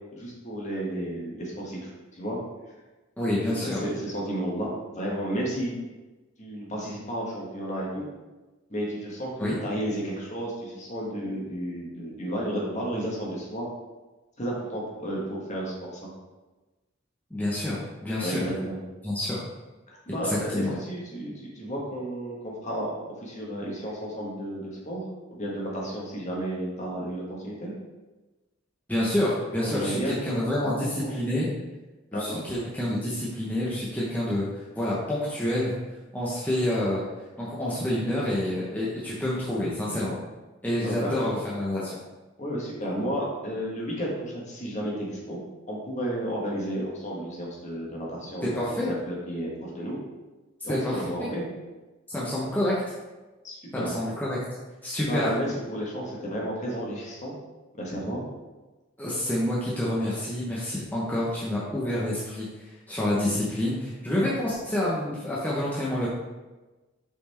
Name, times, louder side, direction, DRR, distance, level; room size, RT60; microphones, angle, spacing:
voice 1, 0.1-2.4 3.6-4.7 4.9-5.7 6.4-8.1 8.7-13.6 14.4-16.1 18.2-18.8 20.1-25.0 25.4-27.7 29.6-31.1 32.1-32.4 40.8-41.1 42.4-45.4 45.7-50.0 50.6-51.4 53.4-53.9 55.1-57.3 57.8-58.2, equal, 35° left, -3 dB, 1.6 m, -32 dB
voice 2, 3.2-3.8 9.4-9.6 17.3-18.4 19.0-19.4 20.2-20.7 28.9-31.5 32.1-35.7 36.1-37.0 37.4-40.2 40.6-42.0 48.4-48.9 50.6-51.3 52.1-52.8 53.7-54.4 54.8-55.3 59.0-66.1, left 1 dB, 10° left, -8 dB, 0.9 m, -28 dB
5.8 x 4.4 x 4.3 m, 1.2 s
head